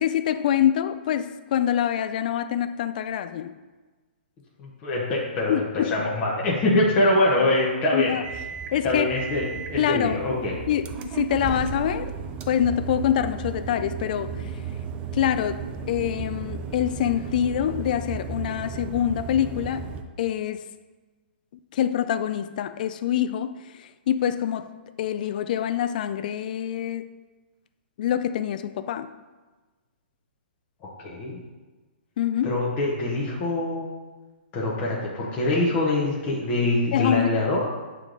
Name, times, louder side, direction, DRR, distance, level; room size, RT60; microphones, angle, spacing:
voice 1, 0.0-3.5 5.5-5.9 7.9-8.2 8.7-9.1 9.8-10.2 10.7-12.1 12.5-14.3 15.1-19.9 20.2-20.6 21.7-24.7 25.0-27.1 28.0-29.1 32.2-32.6 36.9-37.3, left 10 dB, 50° left, 11 dB, 0.3 m, -25 dB
voice 2, 4.6-8.1 8.8-10.6 31.0-31.4 32.4-33.9 34.5-37.7, left 2 dB, 25° left, -4 dB, 1.0 m, -24 dB
sound 1, 8.2-20.0, right 6 dB, 20° right, 0.4 m, -35 dB
8.4 x 3.2 x 3.9 m, 1.3 s
hypercardioid pair, 155°, 6 cm